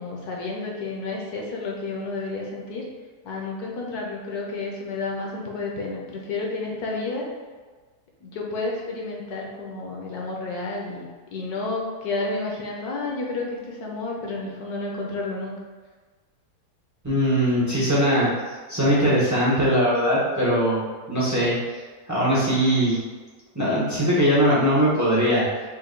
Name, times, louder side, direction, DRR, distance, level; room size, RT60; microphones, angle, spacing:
voice 1, 0.0-2.8 3.2-7.3 8.2-15.6, left 3 dB, 70° left, -1 dB, 1.2 m, -31 dB
voice 2, 17.0-18.3 18.7-20.8 21.1-21.5 22.1-23.0 23.5-25.5, equal, 25° right, -8 dB, 0.3 m, -20 dB
4.4 x 2.2 x 3.7 m, 1.4 s
omnidirectional pair, 1.8 m